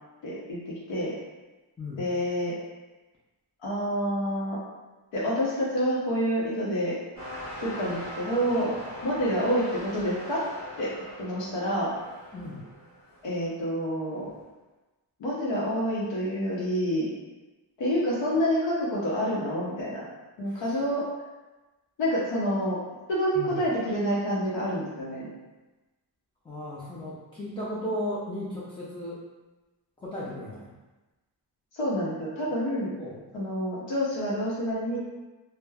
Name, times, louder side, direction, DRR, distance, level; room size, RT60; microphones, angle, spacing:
voice 1, 0.2-1.1 2.0-2.5 3.6-4.6 5.1-6.9 7.6-8.7 9.0-10.4 10.8-10.9 11.2-11.9 13.2-14.3 15.2-17.1 17.8-20.0 20.4-21.0 22.0-22.8 23.1-25.3 31.7-32.9 33.3-35.0, equal, 75° left, -6 dB, 0.8 m, -28 dB
voice 2, 1.8-2.1 12.3-12.6 20.4-20.8 23.3-23.6 26.4-29.2 30.0-30.7 33.0-33.3, left 1 dB, 10° left, -8 dB, 0.4 m, -35 dB
sound 1, 7.2-13.5 14.3-14.4, equal, 35° left, 1.3 m, -41 dB
3.2 x 2.1 x 2.2 m, 1.1 s
wide cardioid pair, 115°, 45 cm